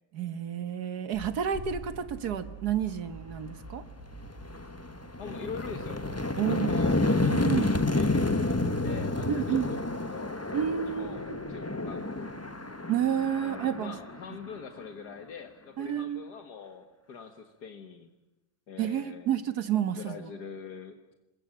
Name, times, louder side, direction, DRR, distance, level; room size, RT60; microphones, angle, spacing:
voice 1, 0.1-3.8 6.4-6.7 7.2-7.7 9.3-9.7 10.5-11.4 12.9-13.9 15.8-16.2 18.8-20.3, right 9 dB, 75° right, 12 dB, 1.9 m, -30 dB
sound 1, 1.1-6.1, right 2 dB, 35° right, 7.4 m, -45 dB
sound 2, 3.5-3.6 4.0-14.8, left 2 dB, 10° left, 1.0 m, -30 dB
voice 2, 5.2-6.0 6.4-10.4 10.8-12.3 13.4-18.1 18.7-19.3 20.0-21.1, left 6 dB, 85° left, 7 dB, 2.2 m, -44 dB
sound 3, 10.5-16.6, left 2 dB, 65° left, 3.3 m, -53 dB
27.5 x 21.5 x 8.9 m, 0.94 s
omnidirectional pair, 1.7 m